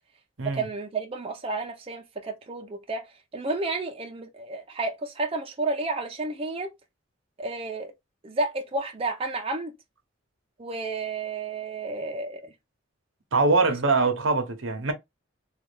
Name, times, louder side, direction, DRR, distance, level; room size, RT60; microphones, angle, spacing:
voice 1, 0.4-3.1 3.3-6.7 7.4-7.9 8.2-9.7 10.6-12.5, right 3 dB, 30° right, 0.5 m, -31 dB
voice 2, 13.3-14.9, right 3 dB, 75° right, 0.8 m, -23 dB
3.2 x 2.3 x 3.2 m
head